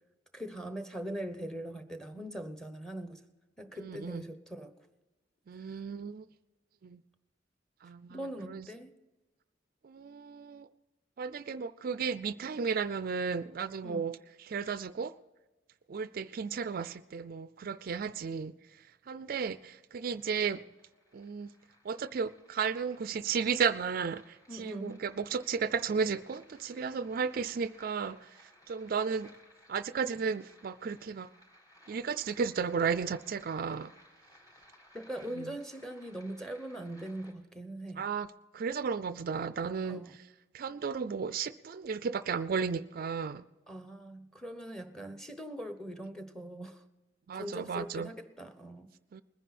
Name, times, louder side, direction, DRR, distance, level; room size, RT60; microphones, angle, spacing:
voice 1, 0.3-3.2 3.6-4.7 5.6-5.8 8.1-9.0 13.8-14.1 24.5-25.0 34.9-38.1 39.8-40.2 43.7-46.8 47.3-49.0, right 1 dB, 5° left, 1.0 m, -41 dB
voice 2, 3.8-4.2 5.5-6.2 6.8-7.0 7.8-8.7 9.8-10.7 11.2-14.2 14.5-15.1 15.9-18.5 19.1-20.6 21.1-21.5 21.8-29.3 29.7-31.3 31.9-33.9 35.3-35.6 38.0-38.3 38.5-40.0 40.5-43.4 47.3-48.1 49.1-49.2, right 6 dB, 50° right, 0.4 m, -34 dB
sound 1, 20.2-37.3, left 1 dB, 20° left, 3.8 m, -61 dB
21.0 x 10.0 x 4.2 m
head